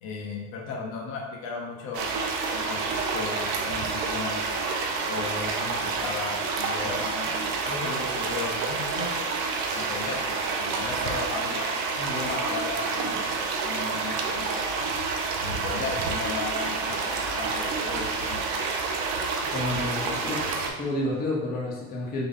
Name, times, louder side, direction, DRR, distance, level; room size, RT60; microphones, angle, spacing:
voice 1, 0.0-4.4 5.1-9.3 9.7-14.5 15.4-18.4, left 4 dB, 55° left, -1 dB, 1.0 m, -36 dB
sound 1, 1.9-20.7, right 4 dB, 65° right, 0.8 m, -29 dB
voice 2, 19.5-22.3, left 1 dB, 25° left, -4 dB, 0.8 m, -30 dB
3.9 x 2.9 x 3.7 m, 1.3 s
supercardioid pair, 135°, 39 cm